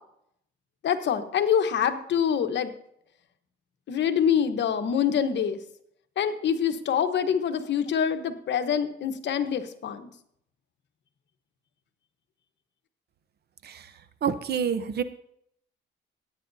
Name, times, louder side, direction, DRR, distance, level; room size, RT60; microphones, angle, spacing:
voice 1, 0.8-2.7 3.9-5.6 6.2-10.1, left 8 dB, 65° left, 8 dB, 1.1 m, -25 dB
voice 2, 14.2-15.0, right 7 dB, 55° right, 12 dB, 0.9 m, -26 dB
16.5 x 9.1 x 2.7 m, 0.71 s
cardioid pair, 90°, 20 cm